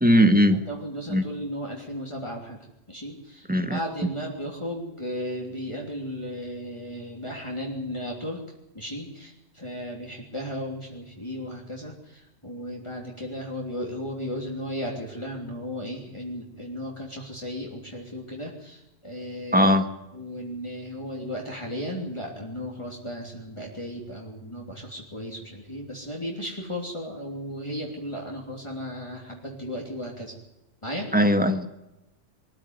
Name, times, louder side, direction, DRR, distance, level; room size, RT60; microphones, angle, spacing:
voice 1, 0.0-0.6 1.1-1.2 3.5-3.8 19.5-19.8 31.1-31.7, equal, 5° right, 8 dB, 1.5 m, -19 dB
voice 2, 0.7-2.6 2.9-8.4 8.7-19.7 20.1-30.3 30.8-31.1, equal, 25° left, -2 dB, 3.4 m, -35 dB
23.5 x 14.0 x 9.6 m, 0.91 s
omnidirectional pair, 1.3 m